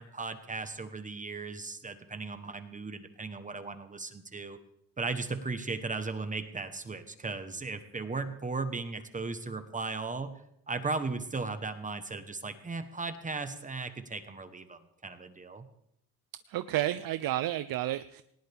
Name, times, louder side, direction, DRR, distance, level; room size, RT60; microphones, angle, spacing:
voice 1, 0.0-4.6 5.0-10.4 10.7-15.7, right 3 dB, 20° right, 9 dB, 1.0 m, -36 dB
voice 2, 16.5-18.2, right 14 dB, 65° right, 13 dB, 0.6 m, -31 dB
19.5 x 19.0 x 3.5 m, 0.76 s
cardioid pair, 165°, 37 cm